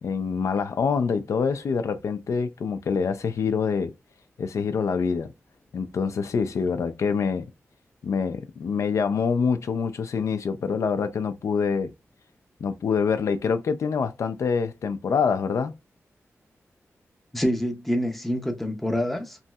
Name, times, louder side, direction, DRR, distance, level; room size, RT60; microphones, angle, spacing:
voice 1, 0.0-3.9 4.4-5.3 5.7-7.5 8.0-11.9 12.6-15.7, left 5 dB, 80° left, 0.4 m, -25 dB
voice 2, 17.3-19.4, equal, 5° left, 0.5 m, -26 dB
3.0 x 2.7 x 2.2 m
wide cardioid pair, 160°, 5 cm